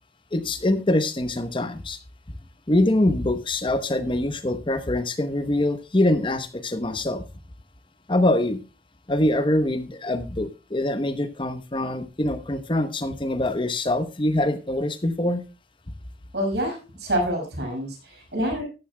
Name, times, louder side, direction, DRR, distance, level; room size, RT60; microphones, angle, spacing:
voice 1, 0.3-2.0 2.7-7.2 8.1-8.6 9.1-15.4, left 1 dB, 30° left, 10 dB, 1.0 m, -24 dB
voice 2, 16.3-18.6, equal, 75° right, 1 dB, 5.9 m, -27 dB
14.5 x 11.0 x 2.2 m, 0.29 s
head